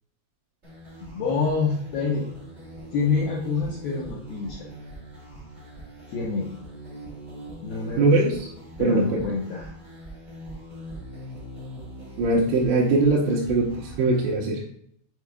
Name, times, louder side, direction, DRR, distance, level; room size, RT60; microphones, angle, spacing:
sound 1, 0.6-14.3, right 1 dB, 25° right, 1.6 m, -42 dB
voice 1, 1.0-2.3 2.9-4.7 6.1-6.5 7.6-8.2 8.8-9.7, left 4 dB, 80° left, -2 dB, 2.2 m, -27 dB
voice 2, 8.0-8.4 8.8-9.2 12.2-14.6, right 3 dB, 90° right, -5 dB, 3.2 m, -21 dB
7.8 x 5.5 x 2.3 m, 0.64 s
omnidirectional pair, 5.2 m